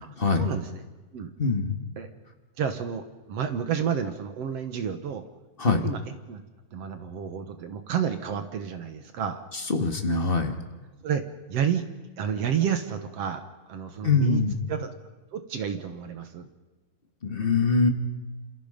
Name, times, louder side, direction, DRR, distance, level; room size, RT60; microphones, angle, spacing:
voice 1, 0.0-0.8 1.1-1.3 2.0-2.1 2.6-5.2 5.6-6.4 6.7-9.4 11.0-11.2 11.5-11.8 12.2-13.4 13.7-14.4 14.7-14.9 15.3-16.5, right 8 dB, 60° right, 8 dB, 2.3 m, -30 dB
voice 2, 1.4-1.7 5.6-5.8 9.7-10.5 14.0-14.5 17.2-17.9, left 4 dB, 20° left, 5 dB, 1.7 m, -23 dB
27.5 x 27.5 x 5.3 m, 1.2 s
omnidirectional pair, 3.3 m